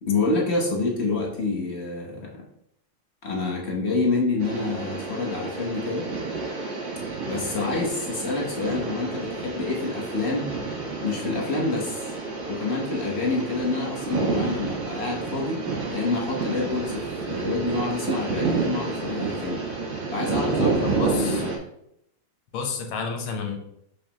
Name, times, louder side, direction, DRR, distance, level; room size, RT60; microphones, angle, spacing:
voice 1, 0.0-2.4 3.2-6.1 7.3-10.5 11.0-12.1 12.5-15.6 15.9-19.6 20.1-21.6, left 3 dB, 40° left, -2 dB, 1.0 m, -27 dB
sound 1, 4.4-21.6, right 4 dB, 60° right, 2.0 m, -30 dB
voice 2, 20.8-21.4 22.5-23.6, left 5 dB, 80° left, 5 dB, 1.8 m, -30 dB
6.2 x 5.4 x 2.9 m, 0.76 s
omnidirectional pair, 2.3 m